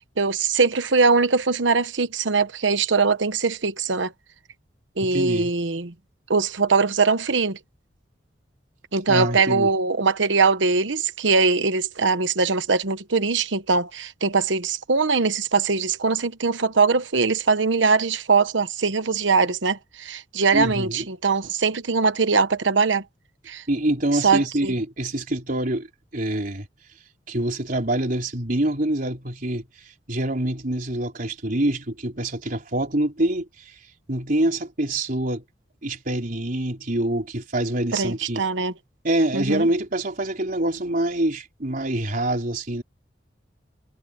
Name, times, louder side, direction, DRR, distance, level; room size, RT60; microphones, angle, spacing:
voice 1, 0.0-4.1 5.0-5.9 6.3-7.6 8.9-23.0 23.5-23.6 24.1-24.7 37.9-38.7 39.3-39.7, right 4 dB, 80° right, 1.1 m, -21 dB
voice 2, 5.0-5.5 9.1-9.7 20.5-21.1 23.7-25.9 26.1-26.7 27.3-29.7 30.1-33.8 34.1-35.4 35.8-38.4 39.0-42.8, right 1 dB, 50° right, 4.2 m, -25 dB
head